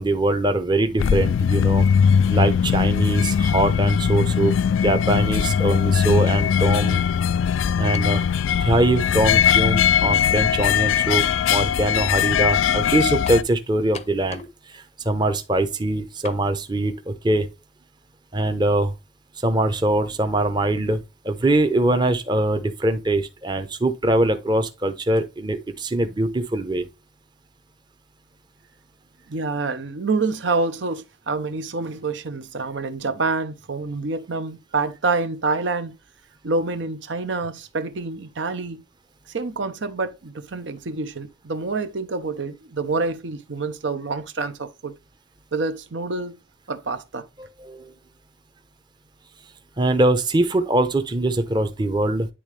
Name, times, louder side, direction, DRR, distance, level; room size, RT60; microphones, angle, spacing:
voice 1, 0.0-1.8 2.3-4.6 4.8-7.0 7.8-8.2 8.6-14.4 14.7-17.5 18.3-18.9 19.4-21.0 21.2-26.9 47.6-47.9 49.8-52.3, right 1 dB, 25° right, 0.7 m, -22 dB
sound 1, 1.0-13.4, left 7 dB, 80° left, 0.3 m, -20 dB
sound 2, 7.9-8.2 9.1-9.2 13.3-13.5 13.9-14.6 14.9-15.0 16.2-16.4, left 5 dB, 35° left, 0.6 m, -38 dB
voice 2, 29.3-35.9 36.4-38.8 39.3-45.0 45.5-46.4 46.7-47.3, right 3 dB, 70° right, 0.7 m, -27 dB
10.0 x 3.6 x 3.3 m
head